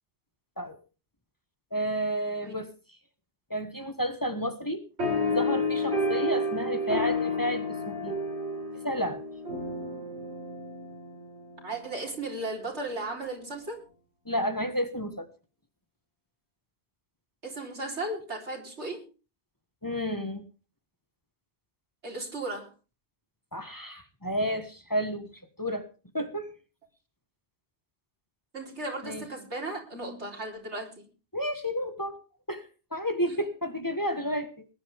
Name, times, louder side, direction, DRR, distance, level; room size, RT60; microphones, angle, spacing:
voice 1, 1.7-2.7 3.5-4.9 5.3-8.1 8.8-9.2 14.2-15.3 19.8-20.4 23.5-25.3 25.6-25.9 26.1-26.5 29.0-29.2 31.3-32.2 32.5-34.6, equal, 20° left, 8 dB, 1.4 m, -31 dB
sound 1, 5.0-11.9, left 2 dB, 75° right, 5.2 m, -30 dB
voice 2, 11.6-13.8 17.4-19.1 22.0-22.7 28.5-31.1 33.3-33.4, right 2 dB, 90° right, 0 dB, 4.2 m, -36 dB
20.5 x 11.5 x 3.5 m, 0.34 s
omnidirectional pair, 1.1 m